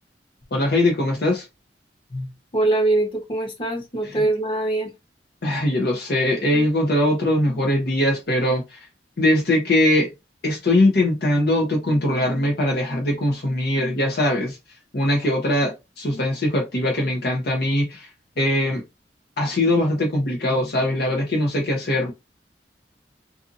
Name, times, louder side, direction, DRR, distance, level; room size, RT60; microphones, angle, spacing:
voice 1, 0.5-1.5 4.2-4.3 5.4-8.9 9.2-10.1 10.4-14.6 14.9-18.1 18.4-18.8 19.4-22.1, left 1 dB, 60° left, 0.7 m, -21 dB
voice 2, 2.1-4.9, right 2 dB, 30° left, 1.0 m, -23 dB
2.6 x 2.5 x 2.6 m
head